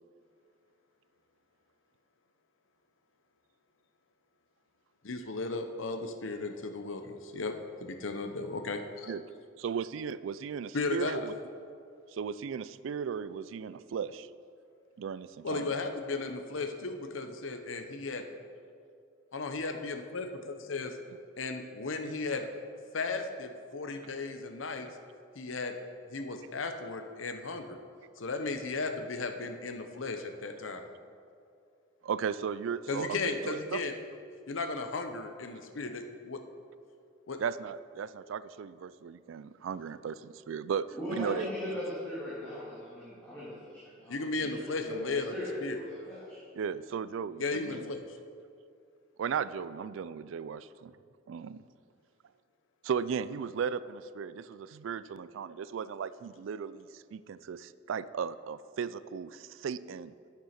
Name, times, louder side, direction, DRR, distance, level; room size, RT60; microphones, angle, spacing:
voice 1, 5.0-7.5 7.8-9.1 10.7-11.2 15.4-18.3 19.3-20.3 20.7-20.9 21.4-22.5 22.9-24.9 25.4-25.7 26.1-27.8 28.2-30.8 32.9-33.9 34.5-36.4 37.3-37.4 44.1-45.8 47.4-48.0, left 3 dB, 70° left, 6 dB, 0.8 m, -35 dB
voice 2, 9.6-11.3 12.1-14.3 15.0-15.7 32.0-33.8 37.4-41.5 46.5-47.9 49.2-50.9 51.3-51.6 52.8-60.1, right 7 dB, 70° right, 16 dB, 0.3 m, -36 dB
voice 3, 40.9-46.4, left 1 dB, 10° left, -11 dB, 2.3 m, -39 dB
9.2 x 7.3 x 5.8 m, 2.3 s
head